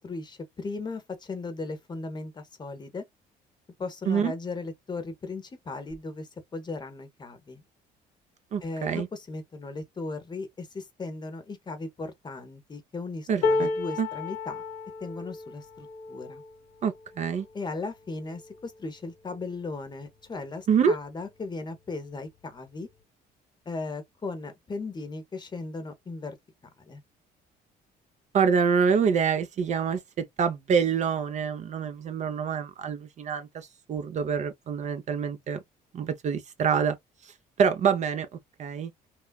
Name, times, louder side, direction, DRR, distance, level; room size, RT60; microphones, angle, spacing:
voice 1, 0.0-3.0 3.8-7.6 8.6-14.6 15.0-16.4 17.5-22.9 23.7-26.4 26.9-27.0, left 3 dB, 25° left, 0.7 m, -37 dB
voice 2, 8.5-9.1 13.3-13.7 14.0-14.1 16.8-17.5 20.7-21.0 28.3-35.6 35.9-37.0 37.6-38.9, right 6 dB, 45° right, 0.5 m, -26 dB
sound 1, 13.4-19.6 20.2-20.4 20.6-21.4 22.4-22.5, left 3 dB, 70° left, 0.7 m, -33 dB
3.0 x 2.3 x 2.2 m
cardioid pair, 110°, 17 cm